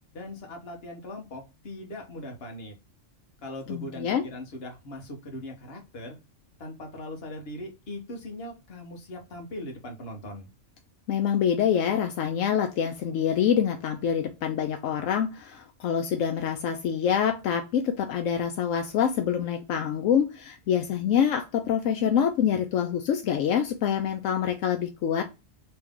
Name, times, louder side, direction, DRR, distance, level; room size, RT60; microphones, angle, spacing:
voice 1, 0.1-2.7 3.4-6.2 6.6-10.5, left 1 dB, 50° left, 2 dB, 1.3 m, -40 dB
voice 2, 3.7-4.2 11.1-25.2, left 8 dB, 80° left, 5 dB, 1.0 m, -26 dB
3.4 x 3.2 x 3.5 m, 0.26 s
omnidirectional pair, 1.3 m